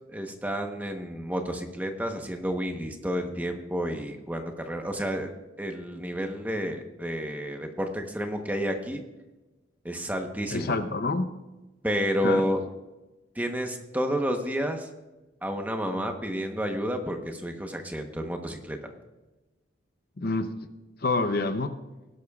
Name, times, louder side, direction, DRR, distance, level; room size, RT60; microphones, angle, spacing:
voice 1, 0.1-5.3 5.6-9.0 9.8-10.7 11.8-12.6 13.3-14.9 15.4-18.9, equal, 10° right, 4 dB, 1.0 m, -30 dB
voice 2, 10.5-11.3 12.2-12.5 20.2-20.7 21.0-21.7, left 3 dB, 50° left, 9 dB, 0.6 m, -27 dB
19.0 x 11.5 x 2.4 m, 1.1 s
head